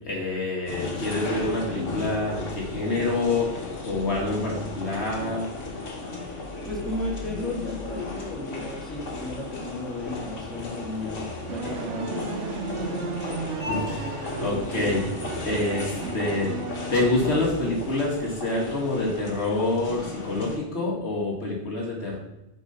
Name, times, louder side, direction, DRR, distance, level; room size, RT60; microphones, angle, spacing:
voice 1, 0.0-3.6 3.8-5.5 13.6-15.1 15.4-16.5 16.9-22.2, left 2 dB, 60° left, -2 dB, 1.9 m, -27 dB
sound 1, 0.7-20.6, left 3 dB, 80° left, 1.6 m, -35 dB
voice 2, 6.6-12.3, left 2 dB, ahead, -4 dB, 1.7 m, -34 dB
sound 2, 11.5-18.1, right 5 dB, 75° right, 1.0 m, -35 dB
7.2 x 3.9 x 5.5 m, 0.93 s
omnidirectional pair, 1.3 m